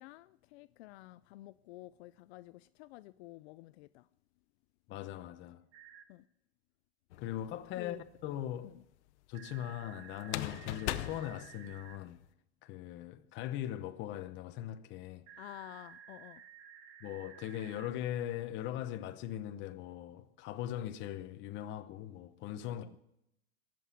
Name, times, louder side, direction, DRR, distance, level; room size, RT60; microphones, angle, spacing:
voice 1, 0.0-4.1 6.1-6.2 7.8-8.0 15.4-16.4 22.6-23.0, left 17 dB, 70° left, 0.5 m, -51 dB
voice 2, 4.9-5.6 7.2-8.0 8.2-8.8 9.3-12.2 12.6-15.2 17.0-22.9, left 11 dB, 35° left, 0.9 m, -40 dB
sound 1, 5.7-6.0 9.3-12.0 15.3-17.9, right 8 dB, 45° right, 1.6 m, -54 dB
sound 2, 7.1-7.8 10.2-12.2, left 15 dB, 90° left, 0.9 m, -39 dB
20.5 x 7.8 x 8.5 m
supercardioid pair, 165°, 33 cm